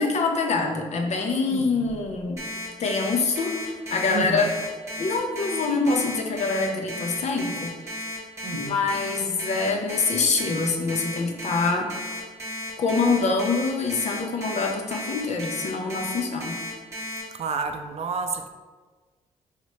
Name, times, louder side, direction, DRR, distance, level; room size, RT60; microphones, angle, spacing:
voice 1, 0.0-2.5 2.8-4.5 5.0-8.0 8.5-11.9 12.8-16.6, left 4 dB, 55° left, 2 dB, 0.6 m, -25 dB
voice 2, 1.5-1.9 4.1-4.6 8.4-8.8 17.4-18.5, right 5 dB, 55° right, 7 dB, 0.4 m, -30 dB
Alarm, 2.4-17.2, left 1 dB, 20° right, 1.0 m, -34 dB
3.2 x 2.9 x 2.9 m, 1.4 s
cardioid pair, 65°, 13 cm